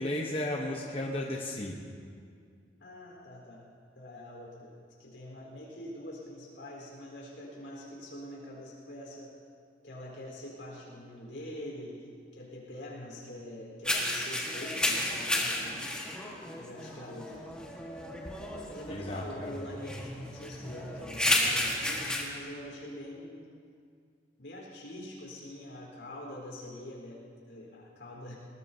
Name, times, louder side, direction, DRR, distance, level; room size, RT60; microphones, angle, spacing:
voice 1, 0.0-1.8 18.9-19.5, left 1 dB, 30° left, -1 dB, 1.0 m, -34 dB
voice 2, 2.8-3.7 3.9-9.3 9.8-12.1 12.3-16.0 16.5-17.7 18.7-23.5 24.4-28.4, left 1 dB, 75° left, -2 dB, 4.3 m, -44 dB
sound 1, 13.8-22.2, left 1 dB, 5° left, 1.6 m, -32 dB
20.5 x 19.5 x 2.8 m, 2.2 s
head